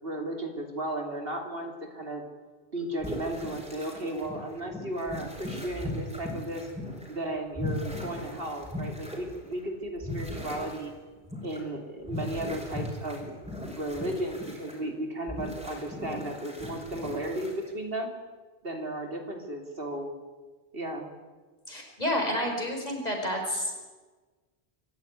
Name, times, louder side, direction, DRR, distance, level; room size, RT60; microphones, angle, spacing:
voice 1, 0.0-2.2 2.7-6.7 7.1-10.9 11.4-13.3 13.7-18.1 18.6-20.1 20.7-21.1, right 1 dB, 65° right, 4 dB, 3.3 m, -34 dB
sound 1, 3.0-7.2 7.5-9.6 10.0-10.9 11.2-11.6 12.0-14.8 15.3-17.8, left 1 dB, 5° right, 5.2 m, -38 dB
voice 2, 21.7-24.0, equal, 40° left, 1 dB, 5.3 m, -30 dB
25.0 x 14.5 x 9.7 m, 1.3 s
omnidirectional pair, 1.1 m